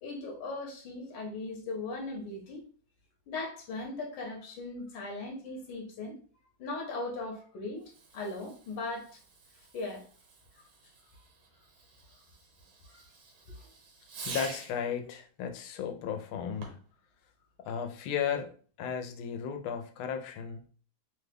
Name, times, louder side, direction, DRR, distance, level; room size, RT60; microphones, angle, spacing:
voice 1, 0.0-2.6 3.3-6.2 6.6-9.2 9.7-10.0 12.9-13.0 13.5-13.6, left 2 dB, 70° left, 0 dB, 1.4 m, -38 dB
Fireworks, 7.8-14.9 16.5-17.0, right 4 dB, 85° right, 1.7 m, -48 dB
voice 2, 14.3-16.8 17.6-18.5 18.8-20.6, left 7 dB, 85° left, 5 dB, 1.4 m, -34 dB
3.7 x 2.2 x 3.3 m, 0.41 s
omnidirectional pair, 2.2 m